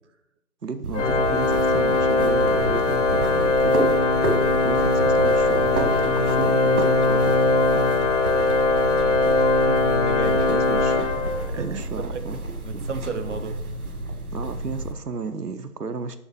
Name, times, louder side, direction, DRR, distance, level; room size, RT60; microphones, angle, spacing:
voice 1, 0.6-3.8 4.5-7.4 7.7-7.9 10.5-11.1 11.6-12.4 12.7-12.8 14.3-16.2, right 4 dB, 85° right, 9 dB, 0.8 m, -33 dB
sound 1, 0.8-14.9, right 2 dB, 65° right, 1.3 m, -30 dB
Organ, 0.9-11.8, left 3 dB, 50° left, 0.7 m, -21 dB
voice 2, 8.9-9.3 9.7-10.4 11.1-13.6, right 4 dB, 50° right, 9 dB, 0.7 m, -34 dB
7.0 x 5.2 x 5.6 m, 0.83 s
figure-of-eight pair, 145°, 46 cm